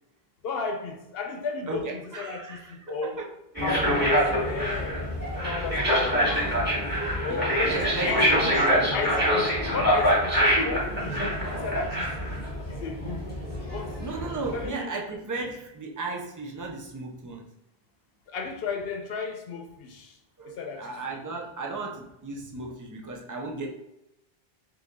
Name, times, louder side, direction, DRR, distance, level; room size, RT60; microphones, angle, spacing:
voice 1, 0.4-3.2 3.6-5.0 5.3-6.3 7.2-11.2 11.5-12.3 12.7-13.3 13.7-13.9 14.5-15.0 18.3-20.1 20.4-21.0 21.7-21.8, left 4 dB, 70° left, 3 dB, 0.9 m, -34 dB
voice 2, 1.7-3.3 7.3-9.0 14.0-17.5 20.4-23.7, right 3 dB, 30° right, 0 dB, 0.3 m, -35 dB
sound 1, 3.6-14.7, equal, 10° right, 1.2 m, -25 dB
3.9 x 2.8 x 3.5 m, 0.93 s
omnidirectional pair, 1.1 m